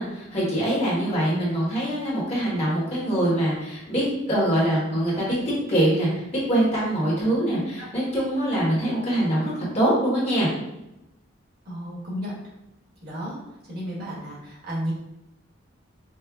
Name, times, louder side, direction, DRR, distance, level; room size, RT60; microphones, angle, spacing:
voice 1, 0.0-10.5, right 1 dB, 30° left, -7 dB, 1.3 m, -24 dB
voice 2, 11.6-12.3 13.0-13.4 13.7-14.9, equal, 50° right, -5 dB, 1.2 m, -32 dB
5.4 x 2.1 x 2.3 m, 0.90 s
head